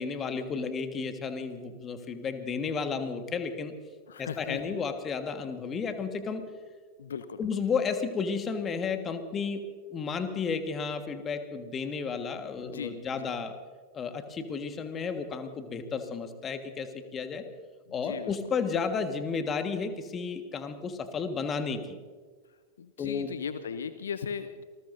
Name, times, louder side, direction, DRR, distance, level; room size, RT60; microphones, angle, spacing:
voice 1, 0.0-3.7 4.2-6.4 7.4-9.6 9.9-13.5 13.9-17.4 17.9-22.0 23.0-23.4, left 5 dB, 25° left, 8 dB, 1.5 m, -32 dB
voice 2, 4.1-4.8 7.0-7.4 12.6-13.3 17.9-18.4 22.8-24.6, left 7 dB, 65° left, 12 dB, 0.7 m, -38 dB
27.5 x 19.5 x 2.7 m, 1.5 s
figure-of-eight pair, 90°, 0 cm